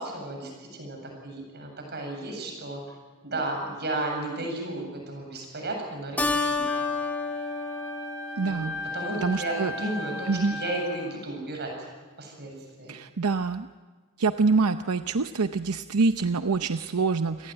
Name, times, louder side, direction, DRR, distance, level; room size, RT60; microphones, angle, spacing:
voice 1, 0.0-3.0 3.2-6.7 8.4-11.9 12.2-12.9, right 2 dB, 50° right, 2 dB, 7.8 m, -34 dB
Keyboard (musical), 6.2-9.1, left 3 dB, 5° left, 1.6 m, -30 dB
Wind instrument woodwind instrument, 6.7-11.1, left 2 dB, 70° left, 5.3 m, -37 dB
voice 2, 8.4-8.8 9.2-9.7 10.3-10.5 12.9-13.7 14.2-17.5, right 4 dB, 85° right, 9 dB, 0.7 m, -25 dB
28.0 x 18.5 x 9.1 m, 1.4 s
head